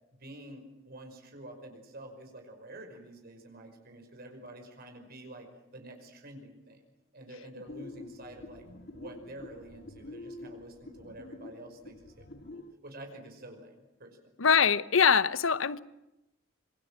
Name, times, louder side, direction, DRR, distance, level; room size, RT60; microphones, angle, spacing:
voice 1, 0.2-6.8 7.1-8.6 8.9-13.7 14.0-14.3, right 1 dB, 50° right, 5.5 m, -48 dB
sound 1, 7.7-12.7, left 2 dB, 55° left, 2.0 m, -47 dB
voice 2, 14.4-15.8, left 6 dB, 85° left, 1.0 m, -23 dB
26.0 x 26.0 x 7.5 m
head